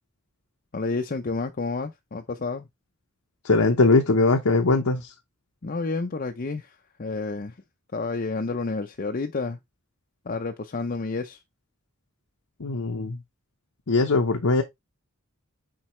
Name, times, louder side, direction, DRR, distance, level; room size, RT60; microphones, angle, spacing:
voice 1, 0.7-2.7 5.6-7.6 7.9-9.6 10.3-11.4, left 3 dB, 40° left, 0.6 m, -30 dB
voice 2, 3.4-5.1 12.6-13.2 13.9-14.6, left 3 dB, 80° left, 0.9 m, -21 dB
7.4 x 4.6 x 3.1 m
head